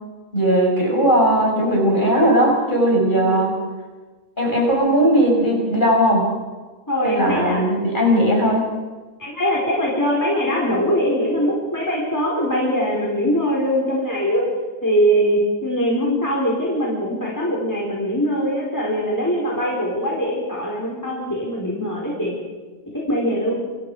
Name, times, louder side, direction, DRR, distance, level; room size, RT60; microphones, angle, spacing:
voice 1, 0.3-3.5 4.4-6.3 7.0-8.7, equal, 30° left, 0 dB, 6.0 m, -18 dB
voice 2, 6.9-7.6 9.2-14.5 14.8-22.3 23.1-23.5, equal, 10° left, -4 dB, 4.8 m, -22 dB
28.0 x 24.0 x 5.0 m, 1.3 s
omnidirectional pair, 1.7 m